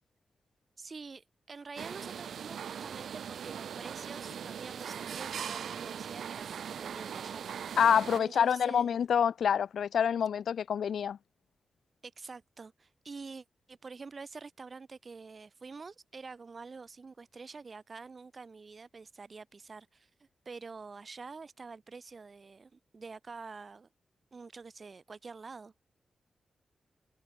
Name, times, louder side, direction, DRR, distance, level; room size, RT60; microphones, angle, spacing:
voice 1, 0.8-7.5 8.2-9.0 12.0-20.1 20.5-23.9 24.3-25.7, right 4 dB, 35° right, 2.3 m, -47 dB
sound 1, 1.8-8.2, right 8 dB, 80° right, 1.2 m, -40 dB
voice 2, 7.8-11.2, left 8 dB, 80° left, 0.9 m, -27 dB
wide cardioid pair, 150°, 0 cm